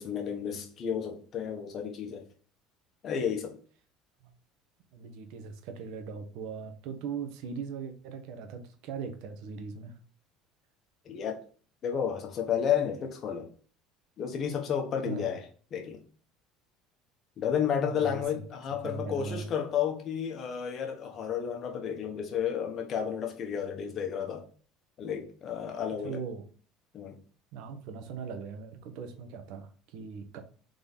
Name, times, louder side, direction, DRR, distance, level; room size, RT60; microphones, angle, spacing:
voice 1, 0.0-2.2 3.0-3.6 11.0-11.4 11.8-13.5 14.2-15.5 15.7-16.0 17.4-24.5 25.0-26.2 26.9-27.2, left 8 dB, 50° left, 1.2 m, -32 dB
voice 2, 4.9-9.9 15.0-15.3 17.8-18.4 18.8-19.5 26.0-26.4 27.5-30.4, right 5 dB, 70° right, 0.9 m, -39 dB
3.9 x 3.3 x 4.1 m
hypercardioid pair, 80°, 0 cm